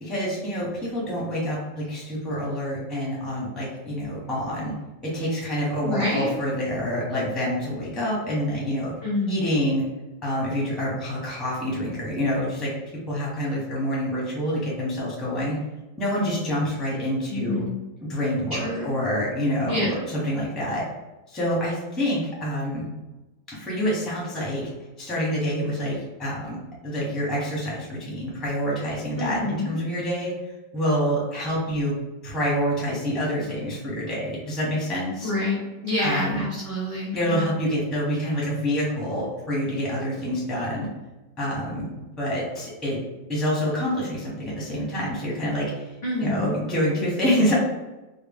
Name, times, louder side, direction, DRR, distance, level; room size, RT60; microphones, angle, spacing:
voice 1, 0.0-4.7 5.0-8.9 9.3-9.8 10.2-12.7 13.1-15.6 16.0-17.6 18.1-20.8 21.3-22.9 23.5-24.6 25.0-26.6 26.8-30.3 30.7-31.9 32.2-35.3 36.0-36.4 37.1-40.9 41.4-41.9 42.2-43.0 43.3-47.5, equal, ahead, -6 dB, 0.5 m, -27 dB
voice 2, 5.8-6.3 9.0-9.5 17.3-17.7 18.5-18.9 19.6-20.0 29.2-29.7 35.2-37.4 46.0-46.6, left 1 dB, 65° left, -5 dB, 0.5 m, -27 dB
3.7 x 2.2 x 3.5 m, 1.1 s
omnidirectional pair, 2.1 m